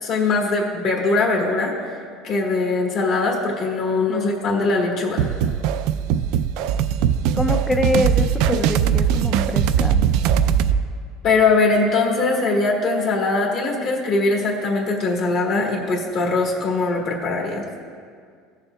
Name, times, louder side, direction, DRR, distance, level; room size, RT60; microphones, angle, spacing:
voice 1, 0.0-1.7 2.2-5.3 11.2-17.6, left 3 dB, 50° left, -1 dB, 1.4 m, -21 dB
sound 1, 5.2-10.8, right 8 dB, 65° right, 0.3 m, -20 dB
voice 2, 7.3-10.0, left 2 dB, 10° left, 8 dB, 0.4 m, -25 dB
16.5 x 6.9 x 2.3 m, 2.1 s
cardioid pair, 145°, 0 cm